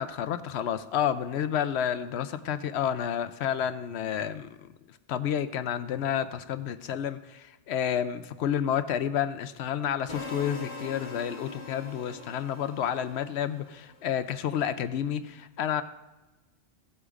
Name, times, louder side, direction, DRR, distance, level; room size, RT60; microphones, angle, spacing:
voice 1, 0.0-4.5 5.1-15.8, left 9 dB, 75° left, 12 dB, 0.8 m, -30 dB
sound 1, 10.1-14.2, left 3 dB, 50° left, 1.9 m, -42 dB
15.5 x 8.2 x 2.5 m, 1.1 s
omnidirectional pair, 1.2 m